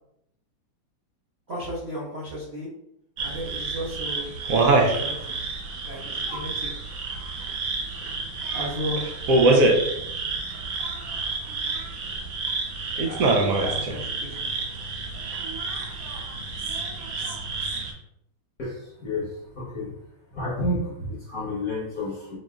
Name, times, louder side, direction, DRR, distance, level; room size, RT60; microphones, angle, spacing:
voice 1, 1.5-2.7 3.2-4.3 4.9-5.3 5.8-6.7 8.5-9.0 12.9-14.5, equal, 45° right, -8 dB, 0.8 m, -34 dB
sound 1, 3.2-17.9, right 3 dB, 80° right, 0.7 m, -26 dB
voice 2, 18.6-20.0 20.3-22.4, left 1 dB, 50° left, -6 dB, 1.1 m, -30 dB
4.7 x 3.1 x 2.3 m, 0.77 s
omnidirectional pair, 2.3 m